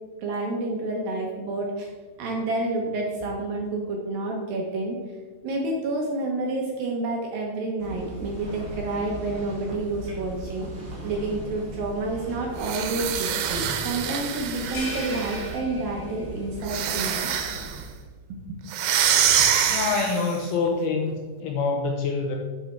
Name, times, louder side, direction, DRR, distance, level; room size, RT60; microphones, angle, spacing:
voice 1, 0.2-1.9 2.2-5.0 5.4-10.7 11.0-17.3 18.3-18.6, right 2 dB, 70° right, 0 dB, 2.3 m, -29 dB
sound 1, 7.8-17.9, right 1 dB, 40° right, 2.4 m, -38 dB
sound 2, 12.6-15.6 16.6-17.8 18.7-20.4, right 9 dB, 90° right, 3.1 m, -25 dB
sound 3, 14.7-16.5, left 3 dB, 50° left, 2.0 m, -38 dB
voice 2, 19.7-22.4, left 4 dB, 80° left, 2 dB, 2.3 m, -26 dB
11.0 x 4.8 x 4.4 m, 1.4 s
omnidirectional pair, 5.0 m